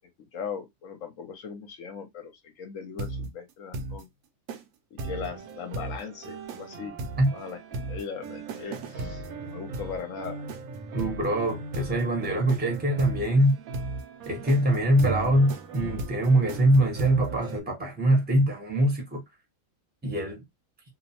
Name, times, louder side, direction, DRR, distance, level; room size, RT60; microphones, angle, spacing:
voice 1, 0.2-4.1 4.9-6.9 7.3-7.6 7.9-10.4, left 6 dB, 70° left, 0.9 m, -39 dB
sound 1, 3.0-3.3 3.7-4.0 4.5-4.6 5.0-17.6, right 3 dB, 80° right, 1.0 m, -37 dB
voice 2, 10.9-13.5 14.3-19.2 20.0-20.4, right 1 dB, 10° right, 0.6 m, -23 dB
2.7 x 2.0 x 2.7 m
omnidirectional pair, 1.5 m